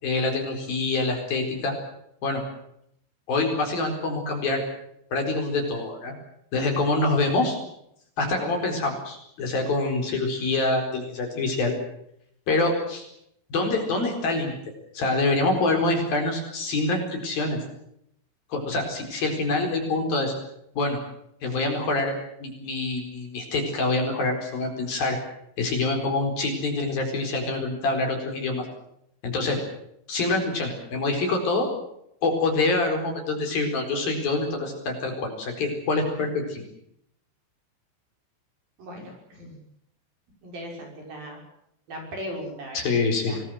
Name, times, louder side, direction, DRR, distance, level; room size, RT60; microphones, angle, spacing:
voice 1, 0.0-1.7 2.2-2.4 3.3-4.6 5.1-6.1 6.5-7.6 8.2-11.7 12.5-13.0 13.5-14.6 14.9-17.6 18.5-20.3 20.7-21.0 21.4-22.2 22.4-25.2 25.6-28.7 29.2-29.6 30.1-31.7 32.2-36.6 42.7-43.4, left 2 dB, 50° left, 3 dB, 5.9 m, -25 dB
voice 2, 38.8-39.6 40.4-41.4 41.9-42.8 43.2-43.4, equal, 45° right, 2 dB, 7.5 m, -38 dB
25.0 x 20.5 x 7.8 m, 0.74 s
omnidirectional pair, 5.7 m